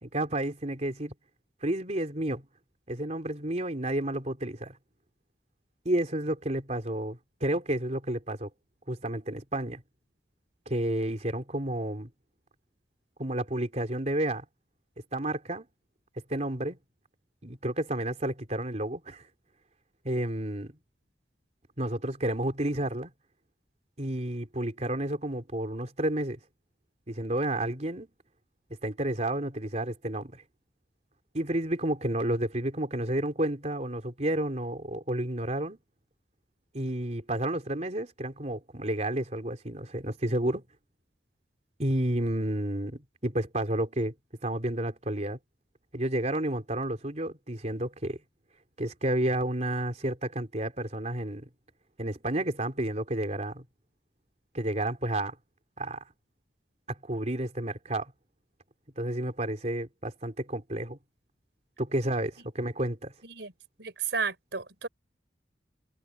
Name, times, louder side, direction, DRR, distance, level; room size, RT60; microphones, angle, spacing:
voice 1, 0.0-1.1 1.6-2.5 2.9-4.8 5.9-8.5 8.9-9.8 10.7-12.1 13.2-14.4 15.1-15.6 16.3-16.8 17.4-19.2 20.0-20.7 21.8-23.1 24.0-26.4 27.1-28.1 28.8-30.4 31.3-35.8 36.7-40.6 41.8-44.1 44.4-45.4 45.9-48.2 48.8-51.5 52.0-53.6 54.5-55.4 55.8-56.0 56.9-58.1 59.0-61.0 61.8-63.1, right 1 dB, 40° right, 3.6 m, -31 dB
voice 2, 63.8-64.9, right 5 dB, 85° right, 4.0 m, -33 dB
head